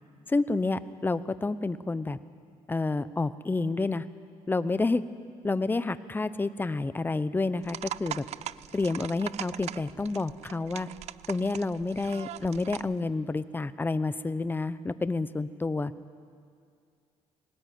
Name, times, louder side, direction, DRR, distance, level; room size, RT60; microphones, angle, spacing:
voice 1, 0.3-2.2 2.7-4.0 4.5-5.0 5.4-8.2 8.7-10.9 11.3-15.9, left 3 dB, 15° left, 14 dB, 0.8 m, -29 dB
sound 1, 7.6-13.0, right 12 dB, 70° right, 0.5 m, -41 dB
20.5 x 18.5 x 9.3 m, 2.3 s
cardioid pair, 100°, 12 cm